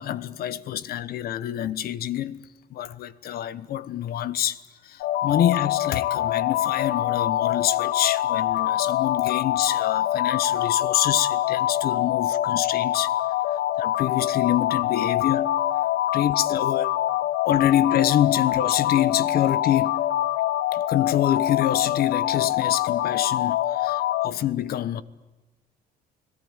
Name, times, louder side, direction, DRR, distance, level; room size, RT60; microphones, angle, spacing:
voice 1, 0.0-13.1 13.8-15.6 16.1-16.9 17.4-20.1 20.7-25.0, left 11 dB, 65° left, 1.2 m, -26 dB
sound 1, 5.0-24.3, left 13 dB, 85° left, 0.8 m, -25 dB
29.5 x 18.0 x 9.0 m
cardioid pair, 110°, 17 cm